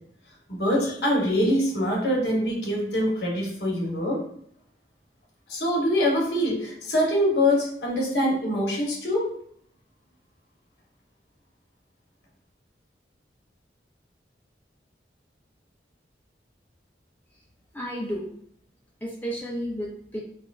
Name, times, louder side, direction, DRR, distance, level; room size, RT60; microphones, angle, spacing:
voice 1, 0.5-4.2 5.5-9.3, left 1 dB, 65° left, -2 dB, 1.0 m, -24 dB
voice 2, 17.7-18.3 19.0-20.2, equal, 10° left, -3 dB, 0.4 m, -32 dB
4.2 x 2.1 x 2.3 m, 0.65 s
head